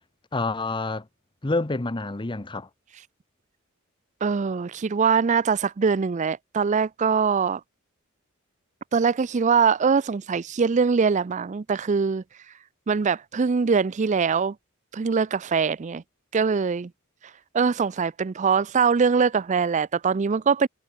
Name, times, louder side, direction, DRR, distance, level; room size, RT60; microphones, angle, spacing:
voice 1, 0.3-1.1 1.4-2.7, left 2 dB, 20° left, 0.8 m, -27 dB
voice 2, 4.2-7.6 8.9-12.2 12.9-14.6 14.9-16.0 16.3-16.9 17.5-20.7, right 5 dB, 35° right, 0.4 m, -22 dB
head